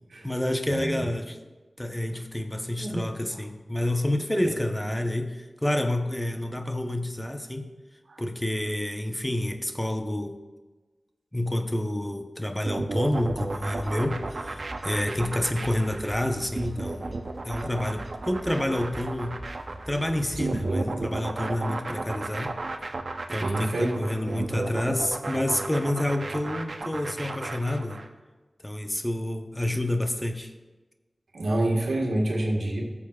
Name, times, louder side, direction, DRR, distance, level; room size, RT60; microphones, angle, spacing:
voice 1, 0.2-1.4 1.8-7.7 8.2-10.4 11.3-17.2 17.4-19.5 19.9-22.6 23.3-28.0 28.6-30.5, left 1 dB, 15° left, 6 dB, 0.8 m, -29 dB
sound 1, 12.6-28.1, right 3 dB, 70° right, 0.7 m, -33 dB
sound 2, 13.1-20.6, right 1 dB, 20° right, 1.8 m, -43 dB
voice 2, 20.6-20.9 23.4-24.1 31.3-32.8, right 1 dB, 90° right, -1 dB, 1.6 m, -27 dB
14.5 x 7.1 x 2.4 m, 1.2 s
cardioid pair, 45°, 0 cm